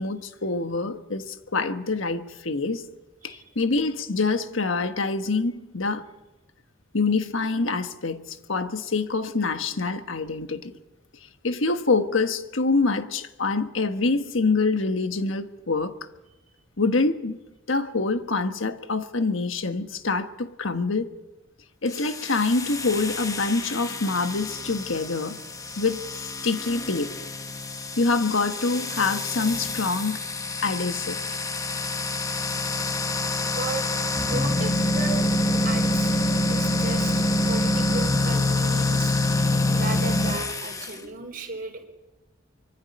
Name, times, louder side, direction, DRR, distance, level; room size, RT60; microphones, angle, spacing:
voice 1, 0.0-2.8 3.2-6.0 6.9-10.7 11.4-15.9 16.8-17.4 17.7-21.1 21.8-25.4 25.8-27.1 28.0-30.2 30.6-31.2, left 3 dB, 75° left, 1.4 m, -25 dB
sound 1, 21.9-41.0, left 2 dB, 15° left, 1.2 m, -26 dB
voice 2, 33.4-33.9 34.3-35.2 35.6-39.2 39.7-41.8, right 3 dB, 45° right, 4.2 m, -35 dB
25.0 x 24.0 x 5.4 m
head